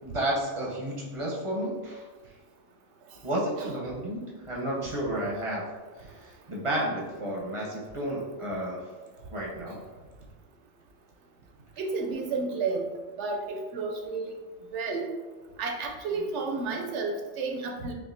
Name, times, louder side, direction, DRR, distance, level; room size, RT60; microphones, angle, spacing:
voice 1, 0.0-2.1 3.2-5.6 6.0-8.8 9.3-9.8, right 1 dB, 30° right, -4 dB, 0.7 m, -32 dB
voice 2, 11.8-12.9 13.2-14.2 14.7-15.1 15.6-17.9, right 4 dB, 70° right, 1 dB, 0.8 m, -31 dB
5.6 x 2.4 x 2.6 m, 1.3 s
omnidirectional pair, 1.3 m